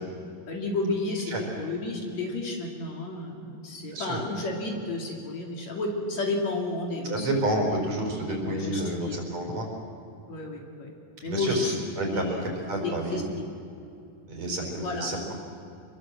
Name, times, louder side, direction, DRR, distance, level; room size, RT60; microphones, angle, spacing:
voice 1, 0.5-7.3 8.3-9.2 10.3-10.9 11.2-11.7 12.1-12.5 12.8-13.4 14.6-15.1, left 2 dB, 50° left, 1 dB, 3.6 m, -32 dB
voice 2, 3.9-4.2 7.1-9.7 11.2-13.2 14.3-15.3, right 1 dB, 50° right, 1 dB, 5.5 m, -29 dB
26.5 x 22.5 x 7.5 m, 2.6 s
omnidirectional pair, 4.1 m